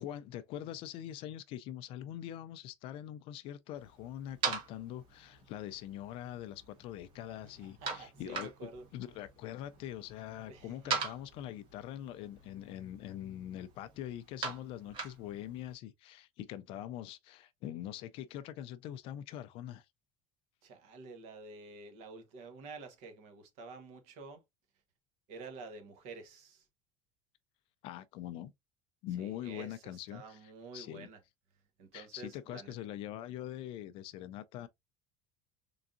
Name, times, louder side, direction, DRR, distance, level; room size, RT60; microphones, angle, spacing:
voice 1, 0.0-19.9 27.8-28.5 29.0-31.1 31.9-34.7, left 12 dB, 45° left, 0.3 m, -43 dB
sound 1, 3.8-15.7, right 5 dB, 40° right, 1.4 m, -43 dB
voice 2, 7.6-8.8 10.5-10.9 20.6-24.4 25.3-26.6 29.2-29.8 30.1-31.2 31.8-32.7, right 4 dB, 55° right, 1.2 m, -49 dB
3.8 x 3.4 x 2.5 m
cardioid pair, 175°, 13 cm